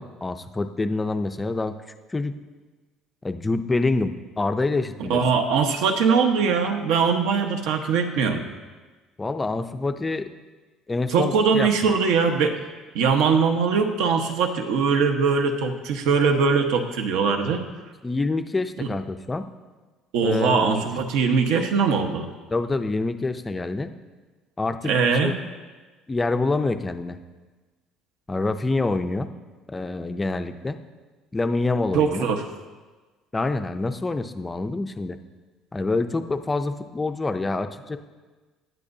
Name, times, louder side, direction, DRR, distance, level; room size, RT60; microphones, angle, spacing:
voice 1, 0.0-1.7 2.1-2.3 3.2-5.2 9.2-10.3 10.9-11.9 18.0-19.4 20.2-20.9 22.5-23.9 24.6-24.9 25.2-25.3 26.1-27.2 28.3-29.3 29.7-30.8 31.3-32.3 33.3-35.2 35.7-38.0, left 3 dB, 10° left, 8 dB, 0.4 m, -26 dB
voice 2, 5.0-8.4 11.1-12.5 12.9-17.6 18.8-18.9 20.1-22.3 24.8-25.4 31.9-32.4, right 5 dB, 80° right, 5 dB, 1.1 m, -21 dB
17.0 x 11.0 x 2.7 m, 1.3 s
cardioid pair, 175°, 0 cm